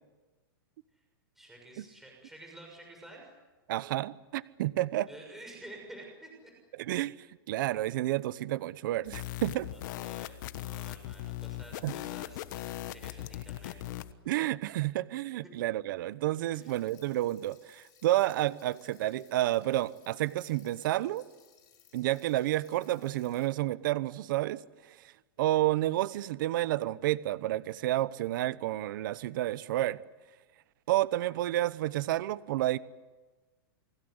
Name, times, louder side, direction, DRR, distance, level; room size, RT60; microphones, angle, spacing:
voice 1, 1.3-3.3 5.1-6.5 9.7-14.0 15.6-15.7 16.5-16.7, right 1 dB, 5° right, 0 dB, 6.7 m, -50 dB
voice 2, 3.7-5.1 6.7-9.7 11.8-11.9 14.2-21.3 21.9-25.1 25.4-30.0 30.9-32.8, right 15 dB, 60° right, 17 dB, 1.0 m, -30 dB
sound 1, 9.1-14.1, left 14 dB, 55° left, 1.3 m, -39 dB
sound 2, 16.5-23.5, left 9 dB, 30° left, 7.6 m, -62 dB
29.5 x 20.5 x 8.1 m, 1.2 s
supercardioid pair, 150°, 12 cm